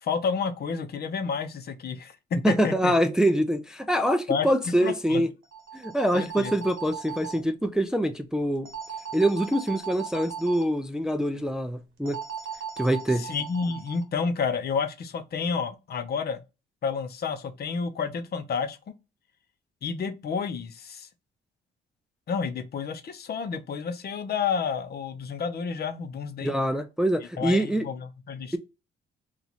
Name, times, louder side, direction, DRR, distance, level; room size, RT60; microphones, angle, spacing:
voice 1, 0.0-2.9 4.3-4.5 4.8-5.2 6.1-6.5 13.2-16.4 16.8-18.8 19.8-21.1 22.3-26.5 27.4-28.6, left 5 dB, 55° left, 0.7 m, -30 dB
voice 2, 2.4-5.3 5.7-8.7 9.1-12.2 12.8-13.3 26.4-27.9, right 1 dB, 5° right, 0.4 m, -25 dB
Telephone ringing, 5.4-7.4 8.6-10.6 12.1-14.0, right 7 dB, 80° right, 0.9 m, -38 dB
3.0 x 2.4 x 4.0 m
cardioid pair, 90°, 20 cm